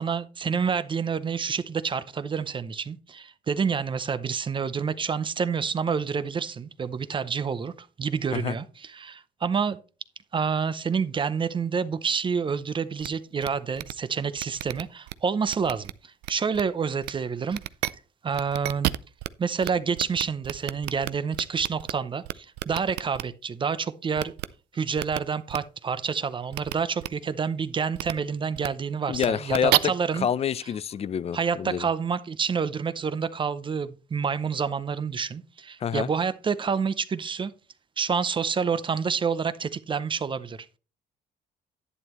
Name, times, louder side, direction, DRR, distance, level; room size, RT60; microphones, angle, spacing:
voice 1, 0.0-9.8 10.3-17.6 18.2-18.9 19.4-24.3 24.7-30.3 31.3-37.5 38.0-40.6, right 6 dB, 30° right, 0.6 m, -28 dB
sound 1, 13.0-13.1 13.4-13.5 13.8-13.9 14.4-15.1 15.5-15.9 16.2-16.6 17.0-17.1 17.5-17.9 18.3-19.3 19.6-19.7 20.0-21.9 22.2-23.2 24.2-24.5 25.0-25.2 25.5-25.6 26.5-26.7 27.0-27.1 27.9-28.1 28.5-28.7 29.1-29.8, right 18 dB, 85° right, 0.5 m, -29 dB
voice 2, 29.1-29.9 30.2-31.9 35.8-36.1, left 8 dB, 35° left, 0.6 m, -27 dB
11.0 x 9.2 x 3.0 m
cardioid pair, 110°, 17 cm